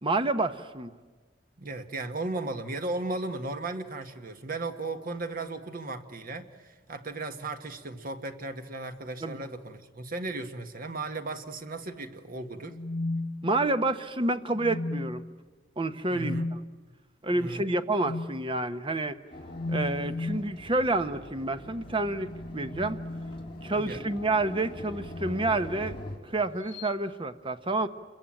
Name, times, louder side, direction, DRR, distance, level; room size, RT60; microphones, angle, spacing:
voice 1, 0.0-0.9 9.2-9.4 13.4-15.2 15.8-16.6 17.2-19.2 19.7-23.0 23.6-26.0 26.3-27.9, right 2 dB, 30° right, 10 dB, 1.0 m, -29 dB
voice 2, 1.6-12.8 16.1-16.5 17.3-17.6 23.7-24.0, right 2 dB, 50° right, 7 dB, 1.6 m, -36 dB
sound 1, 12.6-13.9 14.5-15.3 16.1-16.6 18.0-18.4 19.5-20.5 22.0-23.9 24.9-25.4 26.6-26.9, left 2 dB, 80° left, 1.0 m, -35 dB
sound 2, 19.3-26.2, left 1 dB, 30° left, 3.8 m, -43 dB
28.5 x 22.5 x 9.0 m, 1.4 s
head